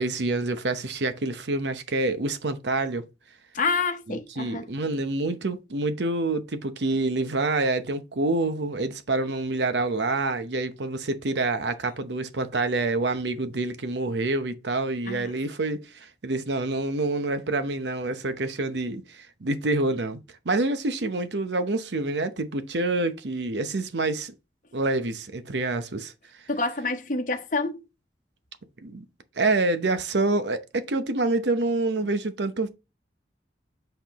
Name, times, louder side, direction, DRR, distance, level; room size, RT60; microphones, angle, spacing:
voice 1, 0.0-3.0 4.1-24.3 24.7-26.1 28.8-29.0 29.4-32.7, right 2 dB, 75° right, 0.8 m, -27 dB
voice 2, 3.5-4.6 15.1-15.3 26.5-27.8, left 3 dB, 45° left, 0.9 m, -28 dB
7.9 x 4.4 x 3.0 m
head